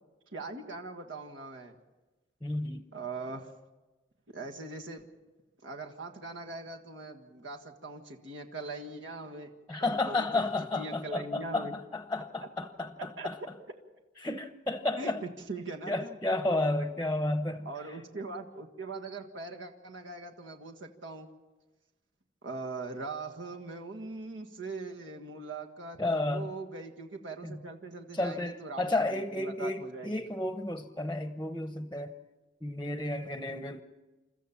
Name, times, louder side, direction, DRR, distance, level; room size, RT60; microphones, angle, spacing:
voice 1, 0.3-1.8 2.9-3.5 4.3-5.1 5.6-9.5 9.8-10.2 10.7-11.7 13.2-13.3 15.0-16.2 17.6-21.3 22.4-30.2 33.3-33.4, right 3 dB, 80° right, 2 dB, 1.7 m, -41 dB
voice 2, 2.4-2.9 9.7-13.4 14.2-15.2 15.9-18.0 26.0-26.5 27.4-27.6 28.1-32.1 32.6-33.8, left 2 dB, 10° left, 8 dB, 0.9 m, -32 dB
28.5 x 14.5 x 7.2 m, 1.2 s
head